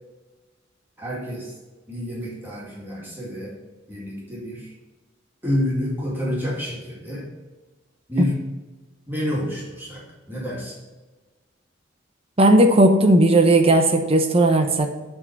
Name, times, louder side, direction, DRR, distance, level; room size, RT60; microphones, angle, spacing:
voice 1, 1.0-1.6 1.9-3.6 3.9-4.7 5.4-7.3 8.1-8.4 9.1-10.8, left 1 dB, 10° right, -6 dB, 2.1 m, -28 dB
voice 2, 12.4-14.9, right 1 dB, 30° right, 4 dB, 0.9 m, -16 dB
8.6 x 3.8 x 5.9 m, 1.2 s
head